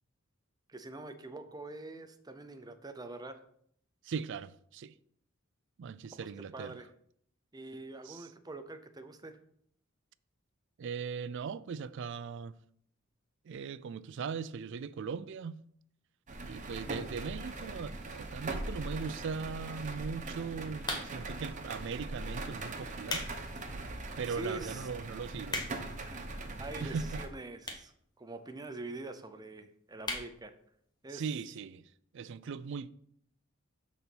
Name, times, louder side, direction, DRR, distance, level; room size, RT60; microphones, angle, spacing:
voice 1, 0.7-3.4 6.2-6.9 7.5-9.4 24.3-24.9 26.0-26.2 26.6-27.9 28.2-30.5 31.0-31.2, right 2 dB, 20° right, 0.6 m, -44 dB
voice 2, 4.0-4.9 5.8-6.8 8.1-8.3 10.8-12.6 13.5-15.6 16.4-23.3 24.2-25.6 26.8-27.2 31.1-31.8 32.1-32.9, right 5 dB, 60° right, 0.4 m, -39 dB
sound 1, 16.3-27.3, right 2 dB, 40° right, 0.9 m, -41 dB
sound 2, 20.8-21.4 22.1-22.3 22.8-23.3 23.8-23.9 24.5-24.6 24.8-24.9 25.1-26.0 26.8-26.9 27.6-28.0 28.3-28.4 28.5-28.6 28.9-29.0 29.3-29.5 30.0-30.3 30.7-30.8 31.0-31.1, left 2 dB, 20° left, 1.1 m, -37 dB
6.9 x 4.1 x 6.0 m
head